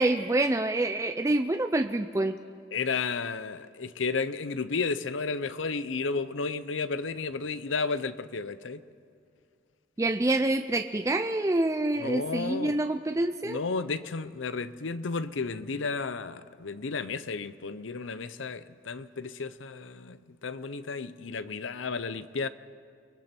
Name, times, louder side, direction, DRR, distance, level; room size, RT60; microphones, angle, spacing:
voice 1, 0.0-2.4 10.0-13.6, right 2 dB, 15° right, 0.4 m, -26 dB
voice 2, 2.7-8.8 12.0-12.8 13.4-20.2 20.4-22.5, left 4 dB, 90° left, 0.7 m, -32 dB
29.5 x 21.0 x 4.5 m
head